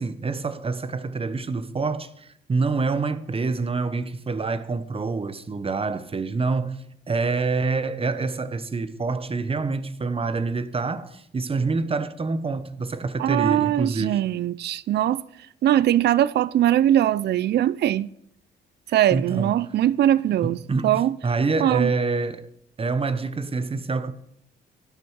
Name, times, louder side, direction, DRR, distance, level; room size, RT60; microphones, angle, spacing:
voice 1, 0.0-14.2 19.1-19.5 20.4-22.4 22.8-24.1, right 4 dB, 30° right, 1.0 m, -26 dB
voice 2, 13.2-15.2 15.6-18.1 18.9-20.6 20.8-21.2 21.6-21.9, right 12 dB, 55° right, 0.4 m, -21 dB
12.0 x 11.5 x 4.7 m
cardioid pair, 90°, 20 cm